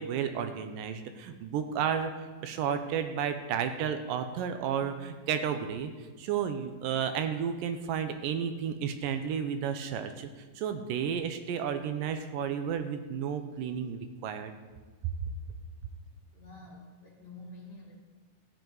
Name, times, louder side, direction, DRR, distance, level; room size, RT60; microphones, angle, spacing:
voice 1, 0.0-10.3 10.6-14.5, right 8 dB, 85° right, 8 dB, 2.3 m, -32 dB
voice 2, 16.3-18.0, left 2 dB, 50° left, -5 dB, 1.3 m, -49 dB
13.5 x 7.9 x 4.6 m, 1.3 s
omnidirectional pair, 4.0 m